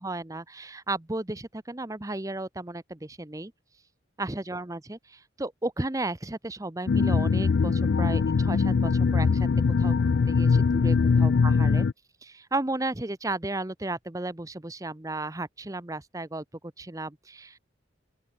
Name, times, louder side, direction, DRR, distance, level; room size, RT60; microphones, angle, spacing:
voice 1, 0.0-3.5 4.2-11.9 12.2-16.4 16.8-17.6, right 2 dB, 15° right, 0.8 m, -34 dB
sound 1, 6.9-11.9, left 5 dB, 60° left, 0.4 m, -22 dB
open air
head